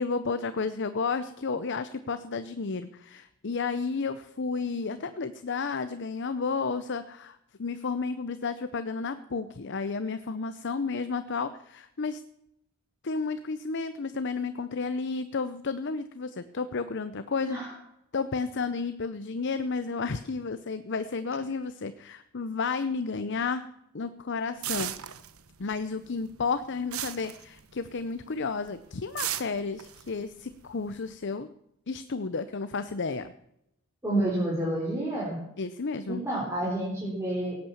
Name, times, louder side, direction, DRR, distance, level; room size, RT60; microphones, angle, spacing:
voice 1, 0.0-12.2 13.0-17.6 18.1-23.6 23.9-24.9 25.6-31.5 31.9-33.3 35.6-36.2, left 4 dB, 55° left, 12 dB, 0.7 m, -32 dB
sound 1, 24.6-25.8 26.0-28.1 28.4-28.7 29.2-31.1, right 11 dB, 85° right, 1.1 m, -35 dB
voice 2, 34.0-35.4 36.1-37.6, right 1 dB, 15° right, -6 dB, 3.8 m, -29 dB
17.5 x 8.8 x 7.1 m, 0.80 s
head